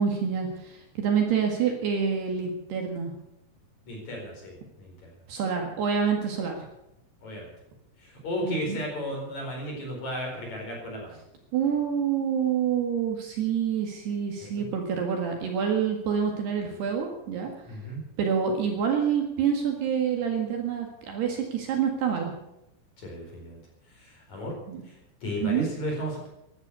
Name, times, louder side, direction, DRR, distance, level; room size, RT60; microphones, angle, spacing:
voice 1, 0.0-3.1 5.3-6.7 8.4-8.8 11.5-17.5 18.2-22.3 24.7-24.8 25.4-25.6, right 7 dB, 60° right, 2 dB, 3.5 m, -27 dB
voice 2, 3.9-5.1 7.2-7.5 8.0-11.2 14.4-14.7 17.7-18.0 23.0-23.6 23.9-24.5 24.8-26.3, equal, 35° left, 0 dB, 5.4 m, -34 dB
16.5 x 12.0 x 6.9 m, 0.85 s
omnidirectional pair, 5.9 m